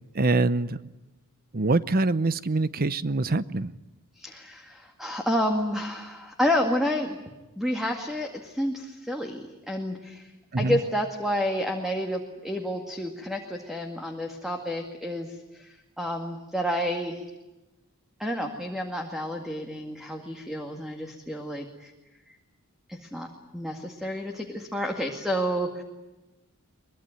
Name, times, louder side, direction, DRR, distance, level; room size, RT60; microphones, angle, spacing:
voice 1, 0.1-0.8 1.5-3.7 10.5-10.8, right 3 dB, 45° right, 16 dB, 0.8 m, -24 dB
voice 2, 4.2-7.2 7.6-10.3 10.6-17.2 18.2-21.9 22.3-22.4 22.9-25.8, equal, ahead, 3 dB, 2.1 m, -30 dB
23.5 x 22.0 x 9.0 m, 1.1 s
head